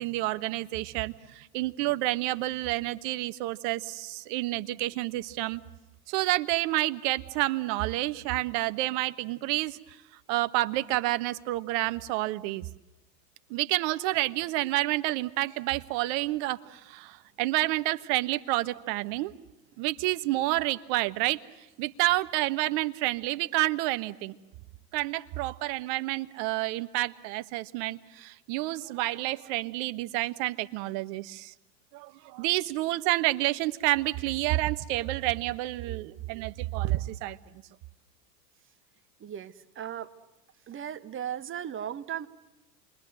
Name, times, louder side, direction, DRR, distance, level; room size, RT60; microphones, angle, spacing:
voice 1, 0.0-5.6 6.1-9.8 10.3-12.6 13.5-19.3 19.8-21.4 21.8-24.4 24.9-31.5 31.9-37.4, right 18 dB, 45° right, 12 dB, 1.3 m, -29 dB
voice 2, 39.2-40.1 40.7-42.3, right 9 dB, 25° right, 10 dB, 1.5 m, -37 dB
29.0 x 22.5 x 7.8 m, 1.0 s
hypercardioid pair, 95°, 50 cm